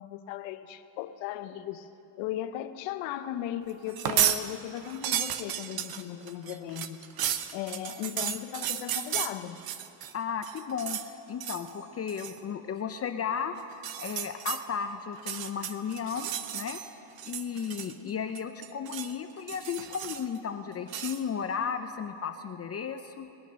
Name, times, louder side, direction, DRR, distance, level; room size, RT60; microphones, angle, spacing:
voice 1, 0.0-1.9 2.2-7.1 7.5-9.6, left 11 dB, 80° left, 10 dB, 0.9 m, -37 dB
sound 1, 3.9-4.4 4.8-10.1 10.4-11.1 11.4-11.7 12.1-12.4 13.7-14.6 15.1-16.9 17.2-18.1 18.3-19.1 19.5-20.4 20.9-21.2, right 10 dB, 55° right, 0.8 m, -33 dB
voice 2, 10.1-11.0 11.3-16.8 17.2-23.3, left 7 dB, 35° left, 7 dB, 0.7 m, -34 dB
20.5 x 9.1 x 6.3 m, 2.9 s
cardioid pair, 100°, 44 cm